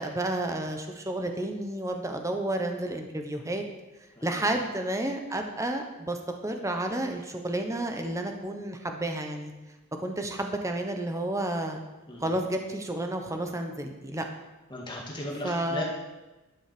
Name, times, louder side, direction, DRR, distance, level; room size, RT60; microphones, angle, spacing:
voice 1, 0.0-3.6 4.2-6.2 6.4-9.5 10.0-11.8 12.2-14.3 15.4-15.8, right 1 dB, 15° right, 4 dB, 1.1 m, -31 dB
voice 2, 4.2-4.5 12.1-12.3 14.7-15.8, left 1 dB, 20° left, -2 dB, 1.9 m, -37 dB
11.5 x 7.3 x 6.9 m, 1.1 s
head